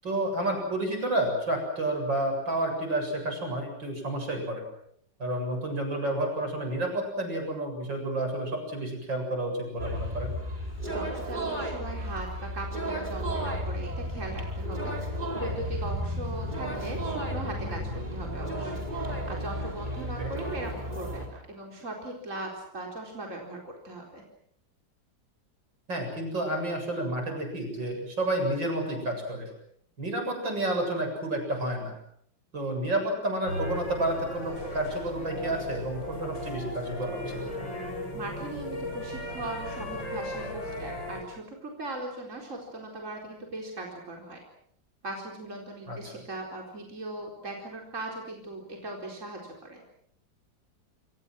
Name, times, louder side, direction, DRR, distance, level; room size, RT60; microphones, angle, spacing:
voice 1, 0.0-4.6 5.2-10.3 20.2-20.3 25.9-29.5 30.0-31.9 32.5-37.6 45.9-46.1, right 1 dB, 75° right, 3 dB, 8.3 m, -30 dB
sound 1, 9.8-21.3, equal, 25° right, 5.1 m, -33 dB
voice 2, 10.9-17.8 18.1-24.2 38.1-44.4 45.0-49.8, right 2 dB, 40° right, 0 dB, 4.6 m, -39 dB
sound 2, 33.5-41.2, left 1 dB, 75° left, 8.6 m, -36 dB
28.0 x 27.0 x 6.2 m, 0.68 s
omnidirectional pair, 2.0 m